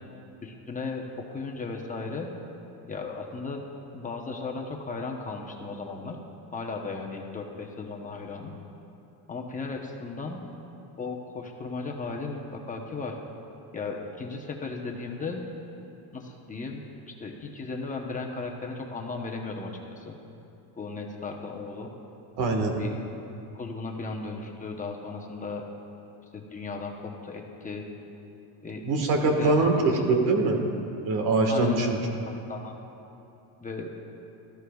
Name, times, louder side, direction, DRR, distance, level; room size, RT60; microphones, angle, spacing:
voice 1, 0.4-2.3 2.9-3.6 3.9-6.2 6.5-8.5 9.3-10.4 11.0-13.2 13.7-15.4 16.1-16.8 17.2-20.2 20.8-21.9 22.8-23.0 23.5-25.6 26.3-27.8 28.6-29.1 29.4-30.0 31.5-31.9 32.5-32.8 33.6-33.9, left 3 dB, 20° left, 0 dB, 0.8 m, -36 dB
voice 2, 22.4-22.7 28.8-30.6 31.0-32.0, right 3 dB, 70° right, 3 dB, 1.6 m, -23 dB
17.5 x 13.0 x 2.3 m, 2.8 s
cardioid pair, 150°, 39 cm